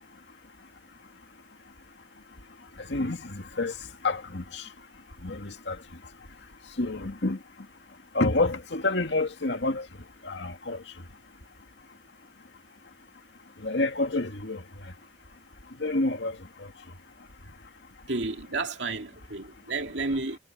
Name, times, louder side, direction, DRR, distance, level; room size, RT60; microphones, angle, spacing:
voice 1, 2.8-4.7 5.2-5.8 6.8-7.4 8.1-9.9 10.2-10.9 13.6-14.9 15.8-16.7, left 2 dB, 75° left, 2.1 m, -29 dB
voice 2, 18.1-20.4, right 3 dB, 80° right, 2.4 m, -31 dB
head